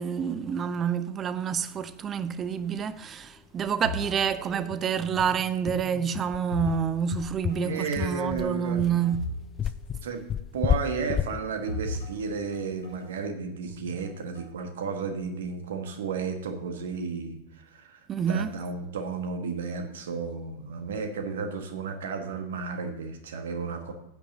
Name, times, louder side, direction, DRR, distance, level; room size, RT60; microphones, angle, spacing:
voice 1, 0.0-9.3 18.1-18.5, right 7 dB, 25° right, 0.6 m, -28 dB
sound 1, 2.8-2.9 3.2-3.3 3.6-3.8 4.1-4.2 4.7-13.1, left 9 dB, 25° left, 0.4 m, -32 dB
sound 2, 3.8-5.4 5.6-7.2 7.5-7.7 8.3-9.5 9.7-9.8 11.0-13.1 13.7-14.5, left 1 dB, 75° left, 3.0 m, -38 dB
voice 2, 7.6-8.8 10.0-10.2 10.5-23.9, right 5 dB, 60° right, 1.5 m, -33 dB
14.5 x 8.7 x 2.8 m
figure-of-eight pair, 90°, 0 cm